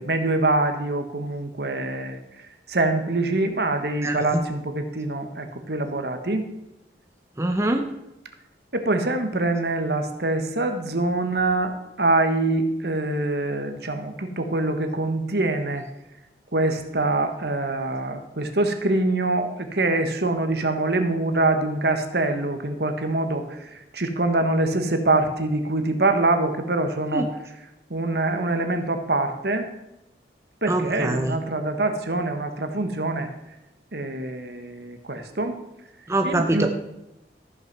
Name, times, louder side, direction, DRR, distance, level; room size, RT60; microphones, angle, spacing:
voice 1, 0.0-6.5 8.7-11.7 12.0-15.9 16.5-27.3 27.9-29.7 30.6-33.3 33.9-35.6 36.2-36.7, right 2 dB, 65° right, 7 dB, 1.3 m, -24 dB
voice 2, 4.0-4.4 7.4-7.8 27.1-27.3 30.7-31.3 36.1-36.7, right 1 dB, 15° right, 4 dB, 0.7 m, -24 dB
14.0 x 6.2 x 6.0 m, 0.92 s
head